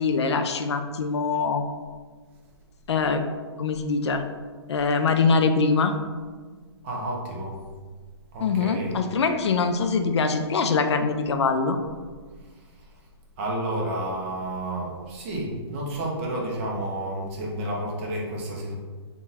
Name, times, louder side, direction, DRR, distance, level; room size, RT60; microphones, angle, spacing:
voice 1, 0.0-1.6 2.9-3.2 3.6-4.2 4.7-6.0 8.4-11.8, left 4 dB, 70° left, 7 dB, 0.4 m, -23 dB
voice 2, 6.8-7.6 8.3-8.9 12.4-12.9 13.4-18.7, right 1 dB, 25° right, -3 dB, 0.7 m, -31 dB
3.8 x 2.3 x 4.0 m, 1.5 s
hypercardioid pair, 160°, 15 cm